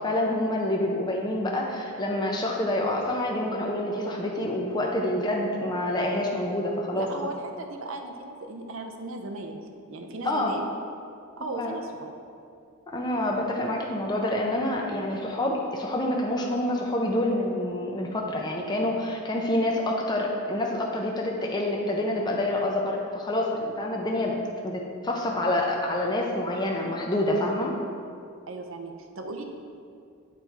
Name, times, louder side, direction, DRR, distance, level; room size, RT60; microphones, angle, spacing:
voice 1, 0.0-7.1 10.2-10.6 11.6-11.8 12.9-24.4 24.6-27.7, left 1 dB, 20° left, -1 dB, 0.6 m, -27 dB
voice 2, 6.9-10.6 11.4-12.1 28.5-29.4, right 2 dB, 65° right, 4 dB, 0.7 m, -37 dB
8.4 x 4.2 x 4.5 m, 2.4 s
head